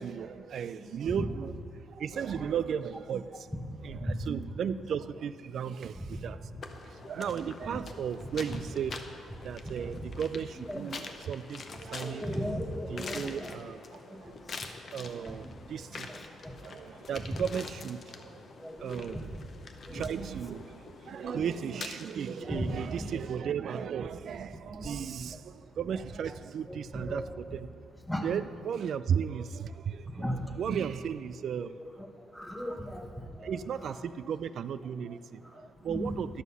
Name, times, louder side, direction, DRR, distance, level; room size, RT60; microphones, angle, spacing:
voice 1, 0.0-1.6 1.9-3.5 3.8-6.6 6.8-12.6 12.9-16.1 16.6-18.4 18.8-19.3 19.9-27.7 28.2-31.8 32.7-32.9 33.4-36.4, right 8 dB, 65° right, 14 dB, 0.3 m, -35 dB
sound 1, 6.6-23.4, left 4 dB, 50° left, 0.7 m, -46 dB
voice 2, 12.0-13.6 14.1-14.2 15.2-15.6 16.1-16.5 17.3-17.4 18.6-19.2 19.9-20.0 21.2-21.4 22.5-23.1 26.7-27.4 28.1-28.4 30.2-30.5 32.3-33.6 35.9-36.2, equal, 5° left, 4 dB, 1.0 m, -36 dB
11.0 x 6.2 x 5.5 m, 2.4 s
cardioid pair, 90°, 0 cm